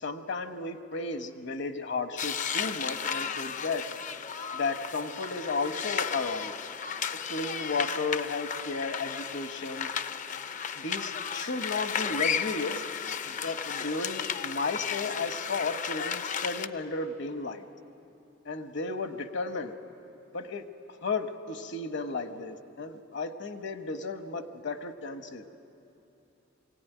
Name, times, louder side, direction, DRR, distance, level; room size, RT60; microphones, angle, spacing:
voice 1, 0.0-3.9 4.5-6.5 7.3-9.9 10.8-12.8 13.3-17.6 18.4-19.7 20.3-20.6 21.0-25.5, left 3 dB, 65° left, 8 dB, 1.1 m, -34 dB
sound 1, 2.2-16.7, left 7 dB, 40° left, 0.5 m, -34 dB
23.5 x 17.0 x 9.2 m, 2.8 s
head